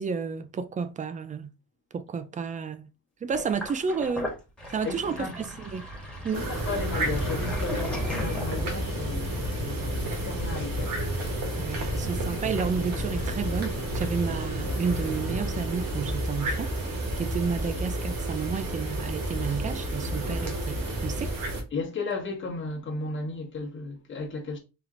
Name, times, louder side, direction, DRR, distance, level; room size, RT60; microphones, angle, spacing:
voice 1, 0.0-1.5 1.9-2.9 3.2-4.3 4.7-5.8 6.2-6.5 11.6-21.3, right 5 dB, 20° right, 0.3 m, -31 dB
Sink (filling or washing), 3.3-8.9, equal, ahead, 1.3 m, -37 dB
voice 2, 4.8-5.3 6.3-11.1 21.7-24.6, left 3 dB, 35° left, 1.2 m, -34 dB
sound 1, 6.3-21.6, right 1 dB, 65° right, 1.5 m, -31 dB
sound 2, 6.9-15.7, left 7 dB, 75° left, 0.6 m, -39 dB
4.3 x 2.9 x 3.7 m
cardioid pair, 170°, 36 cm